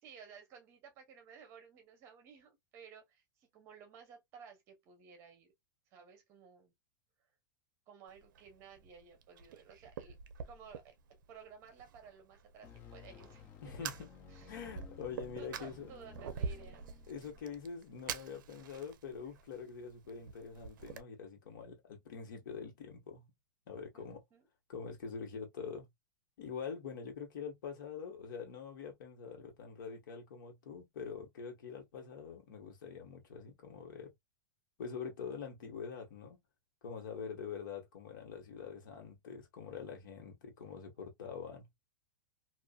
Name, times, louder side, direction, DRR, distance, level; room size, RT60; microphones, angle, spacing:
voice 1, 0.0-5.5 5.9-6.7 7.9-10.2 10.5-14.6 15.0-15.1 15.4-16.9 23.9-24.4, right 7 dB, 25° right, 0.8 m, -56 dB
Fire, 8.1-21.0, right 6 dB, 75° right, 0.5 m, -47 dB
sound 1, 12.6-17.9, left 5 dB, 15° left, 0.4 m, -56 dB
voice 2, 13.6-14.1 14.5-15.9 17.1-23.3 23.7-24.2 24.7-25.9 26.4-34.1 34.8-36.4 36.8-41.7, left 6 dB, 70° left, 1.3 m, -45 dB
2.6 x 2.4 x 2.2 m
supercardioid pair, 175°, 11 cm